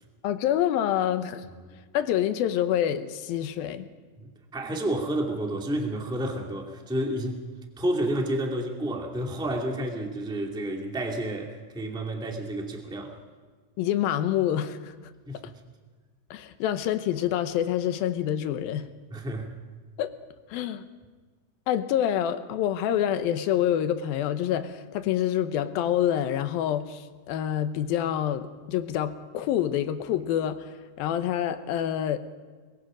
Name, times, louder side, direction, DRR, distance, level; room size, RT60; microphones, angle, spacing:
voice 1, 0.2-1.4 1.9-3.9 13.8-14.9 15.3-15.5 16.3-18.8 20.0-20.1 20.5-20.9 21.7-30.6 31.0-32.2, left 10 dB, 85° left, 2.8 m, -27 dB
voice 2, 4.2-7.4 7.8-13.2 15.3-15.4 19.1-19.5, right 1 dB, ahead, 1.5 m, -30 dB
23.0 x 22.0 x 5.1 m
omnidirectional pair, 4.1 m